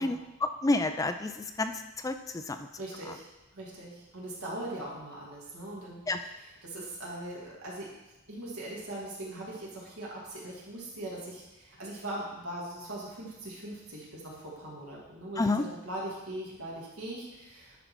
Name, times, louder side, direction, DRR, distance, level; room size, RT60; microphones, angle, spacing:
voice 1, 0.0-2.7 6.1-6.2 15.4-15.6, left 2 dB, 15° left, 8 dB, 0.3 m, -30 dB
voice 2, 2.8-3.2 3.5-7.9 8.3-17.8, right 1 dB, 80° right, -5 dB, 2.3 m, -40 dB
10.5 x 4.0 x 4.5 m, 1.0 s
head